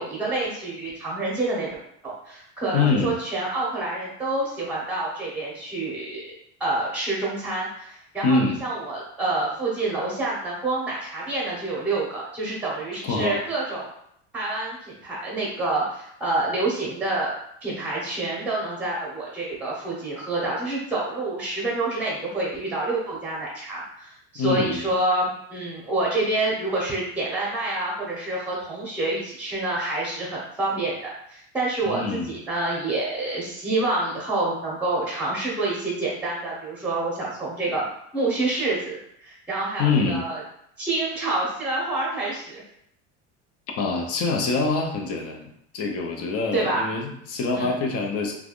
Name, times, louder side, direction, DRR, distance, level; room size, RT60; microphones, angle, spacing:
voice 1, 0.0-1.7 2.0-6.3 6.6-13.9 14.3-17.3 17.6-37.8 38.1-40.4 40.8-42.6 46.5-46.9 47.5-47.7, right 2 dB, 5° right, -5 dB, 0.9 m, -27 dB
voice 2, 2.7-3.1 8.2-8.6 12.9-13.4 24.3-24.8 31.9-32.3 39.8-40.2 43.8-45.5 45.7-48.3, left 4 dB, 40° left, 2 dB, 0.6 m, -25 dB
3.3 x 2.3 x 2.4 m, 0.72 s
supercardioid pair, 120°, 36 cm